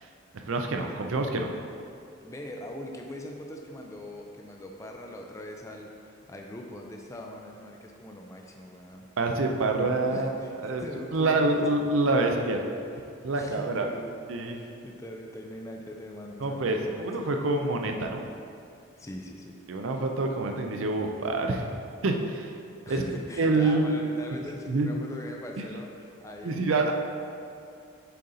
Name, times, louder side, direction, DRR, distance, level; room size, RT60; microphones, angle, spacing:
voice 1, 0.4-1.5 9.2-10.3 10.6-10.8 11.1-12.6 13.2-13.9 14.3-14.6 16.4-18.3 19.7-21.7 22.0-22.5 22.9-23.0 23.4-23.9 24.7-24.9 25.6-25.7 26.4-26.9, right 2 dB, 75° right, 3 dB, 0.5 m, -26 dB
voice 2, 2.2-9.1 10.1-11.8 13.3-14.1 14.5-17.3 19.0-19.6 22.8-26.7, left 1 dB, 15° left, 1 dB, 0.3 m, -42 dB
6.6 x 4.0 x 3.9 m, 2.4 s
head